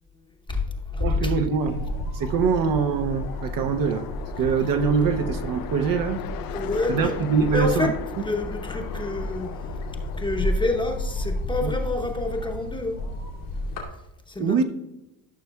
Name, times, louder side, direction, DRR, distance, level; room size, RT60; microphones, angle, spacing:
voice 1, 0.5-1.3 6.5-7.1 7.5-9.5 10.2-13.0 14.3-14.6, left 2 dB, 10° left, 3 dB, 0.8 m, -28 dB
voice 2, 1.0-1.9 2.1-4.1 4.4-6.3 6.9-7.9 11.6-11.7 14.4-14.6, right 6 dB, 55° right, 6 dB, 0.7 m, -23 dB
sound 1, 1.6-13.8, left 1 dB, 85° left, 2.6 m, -32 dB
sound 2, 2.2-11.2, left 9 dB, 55° left, 0.6 m, -39 dB
13.5 x 6.5 x 2.3 m, 0.94 s
cardioid pair, 130°, 42 cm